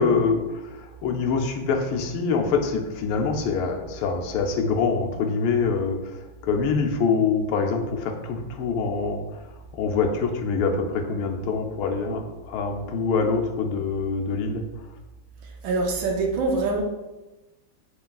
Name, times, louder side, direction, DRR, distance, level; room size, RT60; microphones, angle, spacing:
voice 1, 0.0-6.0 6.4-9.2 9.7-14.6, left 5 dB, 85° left, 3 dB, 1.5 m, -25 dB
voice 2, 15.6-16.8, right 3 dB, 75° right, 0 dB, 1.3 m, -24 dB
6.9 x 3.1 x 2.3 m, 1.1 s
omnidirectional pair, 2.3 m